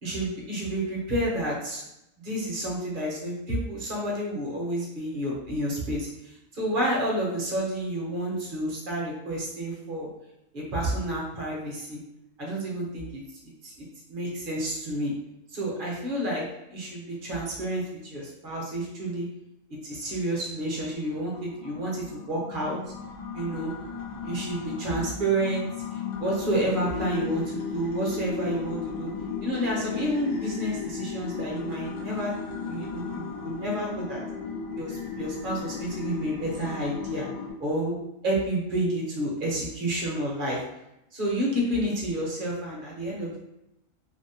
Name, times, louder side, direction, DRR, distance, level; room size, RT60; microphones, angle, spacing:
voice 1, 0.0-1.8 2.2-6.1 6.5-10.1 10.5-12.0 12.4-13.7 14.1-15.1 15.5-16.4 16.7-19.3 19.8-22.8 23.3-23.7 24.2-25.7 26.2-29.1 29.4-32.3 32.7-34.2 34.8-37.3 37.6-38.0 38.2-40.6 41.1-43.4, right 1 dB, 50° right, -4 dB, 0.7 m, -30 dB
sound 1, 20.8-37.5, left 6 dB, 85° left, 1.1 m, -35 dB
2.6 x 2.0 x 2.7 m, 0.86 s
omnidirectional pair, 1.4 m